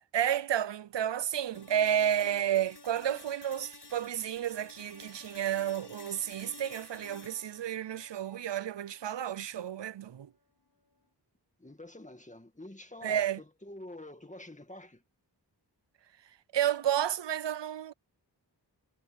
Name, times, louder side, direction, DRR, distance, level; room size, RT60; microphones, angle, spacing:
voice 1, 0.1-10.3 13.0-13.4 16.5-17.9, right 10 dB, 90° right, 0.6 m, -31 dB
sound 1, 1.5-9.6, left 3 dB, 70° left, 4.5 m, -52 dB
voice 2, 11.6-15.0, left 1 dB, 15° left, 2.1 m, -47 dB
wide cardioid pair, 60°, 41 cm